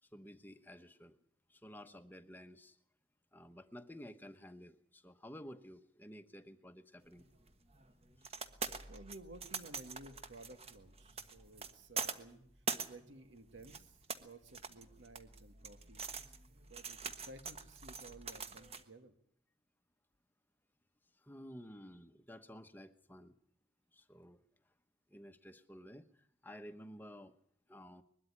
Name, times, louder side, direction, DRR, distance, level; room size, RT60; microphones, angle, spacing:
voice 1, 0.0-1.2 1.5-2.8 3.3-7.2 8.2-8.4 21.1-23.4 23.9-24.4 25.1-27.4 27.7-28.0, equal, 10° left, 9 dB, 1.0 m, -53 dB
sound 1, 7.1-18.8, right 5 dB, 35° right, 1.3 m, -44 dB
voice 2, 8.9-12.4 12.9-16.0 16.6-19.1, right 2 dB, 85° right, 9 dB, 1.9 m, -55 dB
21.5 x 13.0 x 10.0 m, 0.68 s
head